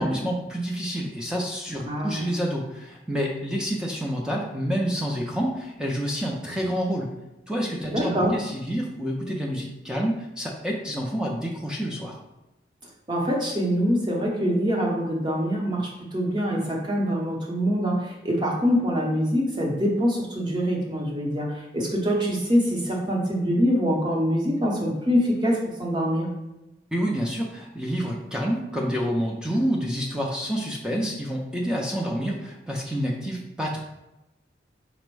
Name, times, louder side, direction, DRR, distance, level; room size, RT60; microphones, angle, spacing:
voice 1, 0.0-7.1 7.5-12.2 26.9-33.8, equal, 5° right, -1 dB, 0.4 m, -28 dB
voice 2, 1.8-2.2 7.9-8.4 13.1-26.3, equal, 25° right, -1 dB, 0.8 m, -24 dB
5.1 x 2.1 x 4.6 m, 0.96 s
head